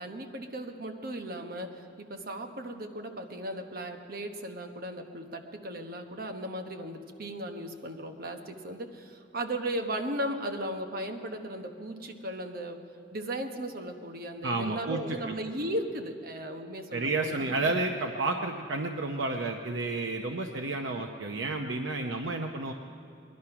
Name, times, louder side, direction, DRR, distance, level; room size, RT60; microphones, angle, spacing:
voice 1, 0.0-12.8 13.1-17.7, right 1 dB, 55° right, 5 dB, 1.1 m, -36 dB
voice 2, 14.4-15.3 16.9-22.7, right 2 dB, 85° right, 3 dB, 0.8 m, -31 dB
20.0 x 11.5 x 5.9 m, 2.6 s
head